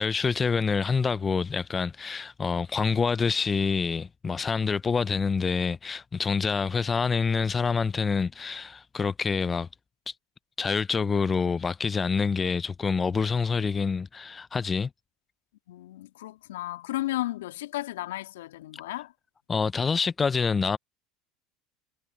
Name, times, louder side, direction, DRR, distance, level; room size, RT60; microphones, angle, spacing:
voice 1, 0.0-9.7 10.1-10.2 10.6-14.9 19.5-20.8, left 5 dB, 25° left, 0.6 m, -26 dB
voice 2, 15.7-19.1, left 16 dB, 75° left, 3.0 m, -34 dB
hypercardioid pair, 75°, 0 cm